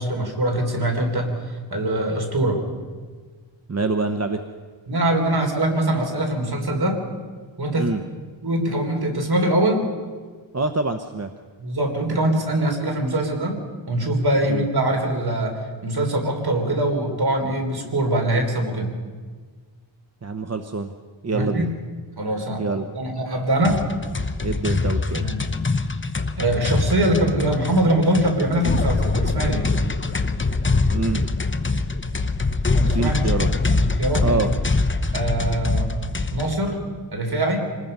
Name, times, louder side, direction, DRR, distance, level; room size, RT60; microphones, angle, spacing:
voice 1, 0.0-2.6 4.9-7.0 7.6-8.0 8.4-9.9 11.6-18.9 21.3-21.7 22.2-22.6 22.9-23.9 25.2-25.5 26.4-29.7 32.7-33.2 33.6-34.4 35.1-35.9 36.3-36.8 37.1-37.6, right 1 dB, 55° right, 3 dB, 3.8 m, -23 dB
voice 2, 3.7-4.4 7.8-8.0 10.5-11.3 14.5-14.6 20.2-20.9 21.2-21.7 22.6-22.8 24.4-25.3 30.9-31.3 32.8-33.5 34.2-34.5, right 3 dB, 35° right, 7 dB, 0.9 m, -25 dB
Cop Action - Action Cinematic Music, 23.6-36.5, left 3 dB, 25° left, 0.9 m, -24 dB
26.0 x 19.5 x 5.5 m, 1.5 s
wide cardioid pair, 95°, 46 cm